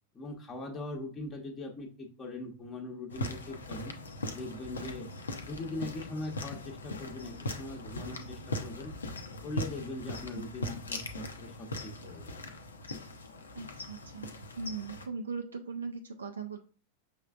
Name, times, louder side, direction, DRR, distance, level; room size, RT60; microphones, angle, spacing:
voice 1, 0.1-3.9 4.3-5.1 5.5-8.9 9.4-12.3, left 2 dB, 20° left, -1 dB, 0.9 m, -41 dB
sound 1, 3.1-15.1, left 1 dB, 70° left, 0.6 m, -40 dB
voice 2, 13.5-16.6, right 4 dB, 70° right, 6 dB, 0.4 m, -39 dB
6.0 x 3.2 x 2.4 m, 0.40 s
figure-of-eight pair, 90°, 0 cm